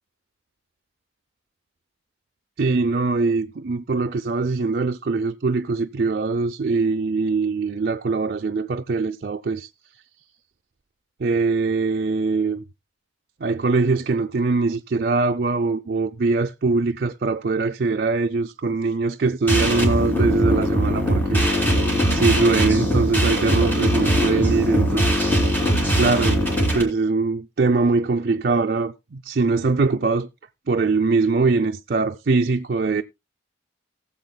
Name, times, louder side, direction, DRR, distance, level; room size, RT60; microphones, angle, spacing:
voice 1, 2.6-9.7 11.2-12.6 13.4-26.4 26.7-30.3 30.7-33.0, right 4 dB, 50° right, 0.5 m, -22 dB
sound 1, 19.5-26.8, equal, 10° left, 2.9 m, -20 dB
19.0 x 7.3 x 2.2 m
head